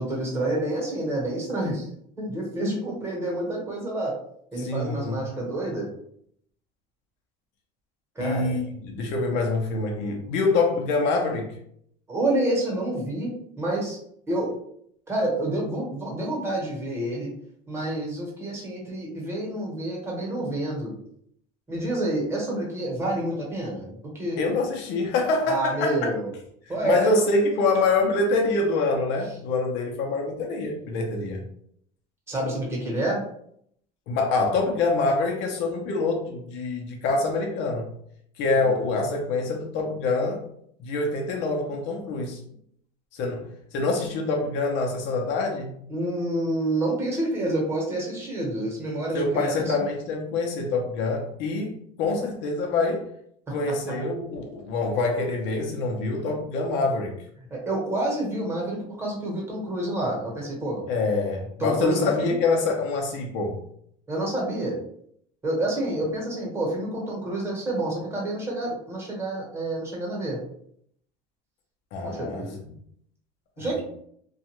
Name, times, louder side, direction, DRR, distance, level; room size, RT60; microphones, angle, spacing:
voice 1, 0.0-1.9 2.2-4.1 4.5-5.9 8.1-8.5 12.1-14.0 14.3-14.5 15.1-17.3 17.7-20.9 21.7-24.4 25.5-26.3 26.7-27.1 32.3-33.2 38.6-38.9 45.9-49.7 53.5-53.7 57.5-60.9 61.6-62.4 64.1-64.8 65.4-70.4 72.0-72.6 73.6-73.8, right 1 dB, 10° right, -2 dB, 1.1 m, -28 dB
voice 2, 4.6-5.2 8.2-11.5 24.4-26.1 26.8-31.4 34.1-37.9 38.4-40.4 40.8-42.4 43.1-45.8 49.1-53.1 53.5-57.2 60.9-63.6 71.9-72.8 73.6-73.8, left 3 dB, 65° left, 1 dB, 0.7 m, -25 dB
2.4 x 2.3 x 2.9 m, 0.68 s
cardioid pair, 125°, 21 cm